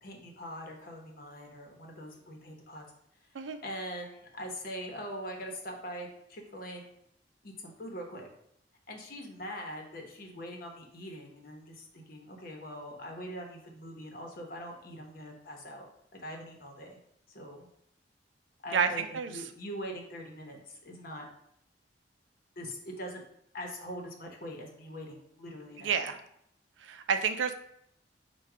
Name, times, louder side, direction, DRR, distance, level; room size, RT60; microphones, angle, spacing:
voice 1, 0.0-2.8 3.6-6.9 7.4-8.3 8.9-15.8 16.1-17.0 17.3-17.7 18.6-21.3 22.6-23.2 23.5-26.0, equal, 50° left, 1 dB, 0.9 m, -42 dB
voice 2, 18.7-19.4 25.8-26.2 26.8-27.5, right 6 dB, 85° right, 8 dB, 0.4 m, -30 dB
4.5 x 2.3 x 4.7 m, 0.73 s
head